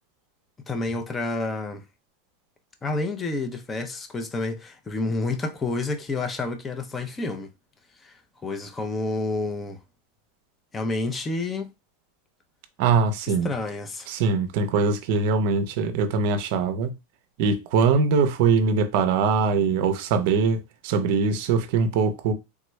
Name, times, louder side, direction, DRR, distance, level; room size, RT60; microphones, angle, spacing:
voice 1, 0.7-1.8 2.8-7.5 8.0-9.8 10.7-11.7 13.4-14.1, left 2 dB, 15° left, 0.5 m, -29 dB
voice 2, 12.8-13.5 14.1-16.9 17.4-22.3, right 5 dB, 55° right, 0.5 m, -22 dB
3.4 x 2.2 x 3.0 m
supercardioid pair, 150°, 0 cm